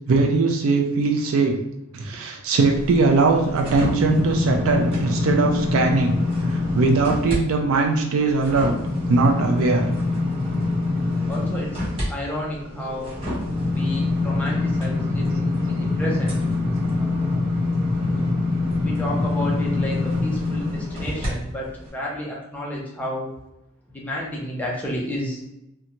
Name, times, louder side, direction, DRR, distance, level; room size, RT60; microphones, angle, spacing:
voice 1, 0.1-1.6 1.9-6.1 6.5-8.7 9.1-9.9, right 3 dB, 80° right, 2 dB, 0.4 m, -20 dB
sound 1, 2.8-7.4 7.8-21.3 21.8-21.9, left 2 dB, 30° right, 1.0 m, -25 dB
voice 2, 11.3-11.8 12.1-13.2 13.7-16.4 17.0-17.4 18.8-23.3 23.9-25.4, left 1 dB, 10° left, -4 dB, 0.6 m, -31 dB
2.6 x 2.3 x 2.9 m, 0.86 s
head